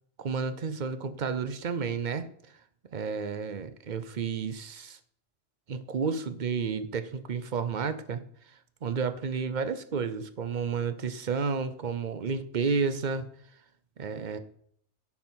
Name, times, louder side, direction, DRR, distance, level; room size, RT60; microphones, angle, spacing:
voice 1, 0.2-2.3 2.9-5.0 5.7-8.2 8.8-13.3 14.0-14.4, right 5 dB, 45° right, 11 dB, 0.7 m, -31 dB
12.0 x 5.9 x 4.4 m, 0.67 s
omnidirectional pair, 1.2 m